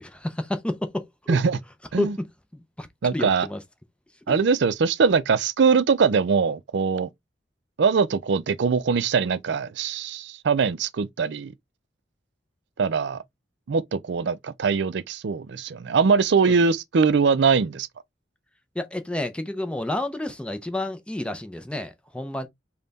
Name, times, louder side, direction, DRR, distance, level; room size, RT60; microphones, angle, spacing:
voice 1, 0.0-1.4 2.0-2.9 3.1-3.6 4.3-4.4 16.4-16.5 18.8-22.5, left 1 dB, 5° left, 0.5 m, -30 dB
voice 2, 3.0-3.5 4.3-7.1 7.8-11.5 12.8-13.2 13.7-17.9, right 5 dB, 65° right, 0.4 m, -22 dB
5.4 x 2.2 x 3.9 m
head